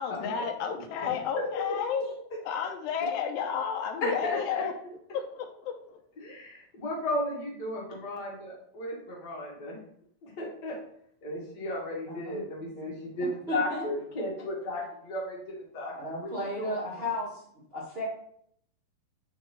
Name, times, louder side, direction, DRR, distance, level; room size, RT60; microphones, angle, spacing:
voice 1, 0.0-2.1 2.5-4.7 5.1-6.0, left 7 dB, 85° left, 5 dB, 2.3 m, -32 dB
voice 2, 0.8-2.1 4.0-4.7 6.2-9.8 10.2-10.8 11.2-17.1, left 1 dB, 55° left, -3 dB, 1.1 m, -35 dB
voice 3, 12.1-12.4 12.8-12.9 13.5-13.8 15.9-17.4 17.7-18.0, left 1 dB, 70° right, -7 dB, 0.5 m, -34 dB
7.9 x 4.1 x 3.2 m, 0.68 s
omnidirectional pair, 4.1 m